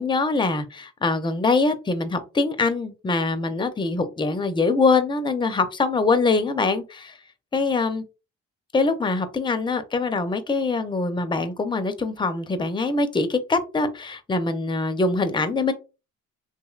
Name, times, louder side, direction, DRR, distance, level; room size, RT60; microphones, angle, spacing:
voice 1, 0.0-7.2 7.5-8.0 8.7-15.7, left 3 dB, 15° left, 10 dB, 0.4 m, -23 dB
3.1 x 2.7 x 2.3 m, 0.30 s
cardioid pair, 90°, 30 cm